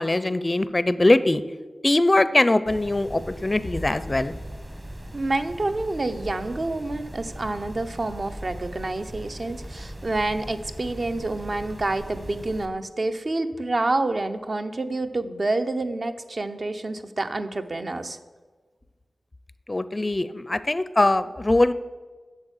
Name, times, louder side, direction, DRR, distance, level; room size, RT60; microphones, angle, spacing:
voice 1, 0.0-1.4 1.8-4.3 19.7-21.7, left 2 dB, 25° left, 14 dB, 0.5 m, -21 dB
sound 1, 2.7-12.7, right 1 dB, 30° right, 1.4 m, -39 dB
voice 2, 5.1-18.2, right 2 dB, 45° right, 8 dB, 0.8 m, -28 dB
8.7 x 7.2 x 8.1 m, 1.4 s
wide cardioid pair, 85°, 0 cm